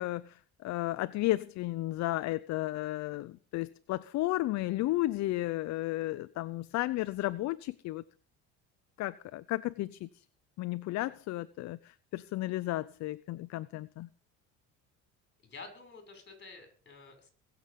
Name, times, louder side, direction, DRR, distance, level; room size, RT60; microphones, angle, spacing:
voice 1, 0.0-8.0 9.0-10.2 10.6-14.1, left 17 dB, 55° left, 0.6 m, -33 dB
voice 2, 15.5-17.3, left 3 dB, 35° left, 6.7 m, -49 dB
22.5 x 7.7 x 5.4 m
cardioid pair, 110°, 33 cm